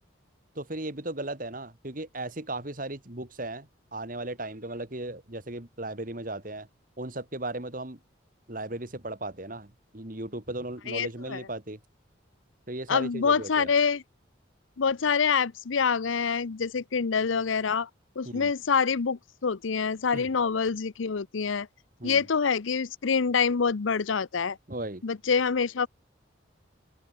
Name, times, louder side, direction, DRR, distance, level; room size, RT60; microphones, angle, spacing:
voice 1, 0.6-6.7 7.0-8.0 8.5-11.8 12.7-13.7 18.2-18.5 20.1-20.3 22.0-22.3 24.7-25.0, right 2 dB, 45° right, 2.3 m, -36 dB
voice 2, 10.9-11.4 12.9-14.0 14.8-17.9 18.2-21.7 22.0-24.6 25.0-25.9, left 5 dB, 80° left, 0.6 m, -26 dB
open air
head